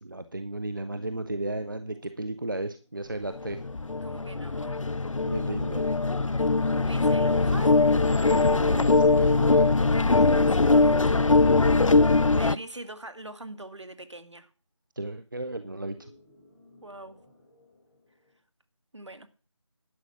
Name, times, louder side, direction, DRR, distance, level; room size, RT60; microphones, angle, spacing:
voice 1, 0.0-3.6 5.2-5.9 8.6-9.7 11.7-11.9 15.0-16.1, right 2 dB, 40° right, 10 dB, 0.7 m, -34 dB
sound 1, 0.7-4.0 5.4-8.3 10.9-13.5 15.6-18.4, left 1 dB, 10° left, 4.1 m, -58 dB
sound 2, 3.4-12.6, left 3 dB, 85° left, 0.6 m, -22 dB
voice 2, 4.0-4.9 6.8-7.8 9.9-11.2 12.4-14.5 16.8-17.2 18.9-19.3, right 2 dB, 65° right, 10 dB, 2.0 m, -43 dB
11.5 x 8.0 x 6.0 m, 0.37 s
figure-of-eight pair, 170°, 16 cm